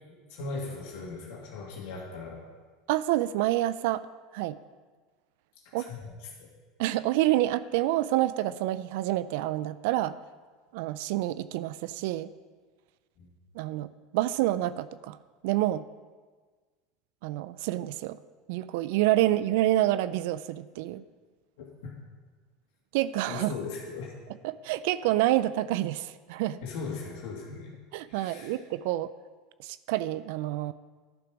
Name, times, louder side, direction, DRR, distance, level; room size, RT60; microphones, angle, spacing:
voice 1, 0.1-2.4 5.6-6.5 13.2-13.3 21.6-21.9 23.3-24.1 26.6-27.7 28.1-28.5, left 4 dB, 70° left, -2 dB, 2.2 m, -39 dB
voice 2, 2.9-4.1 4.3-4.6 5.7-5.9 6.8-10.2 10.7-12.3 13.6-15.2 15.4-15.8 17.2-18.2 18.5-21.0 22.9-23.5 24.4-26.6 27.9-29.1 29.6-30.7, right 15 dB, 70° right, 16 dB, 0.3 m, -28 dB
11.5 x 5.1 x 6.1 m, 1.4 s
supercardioid pair, 115°, 0 cm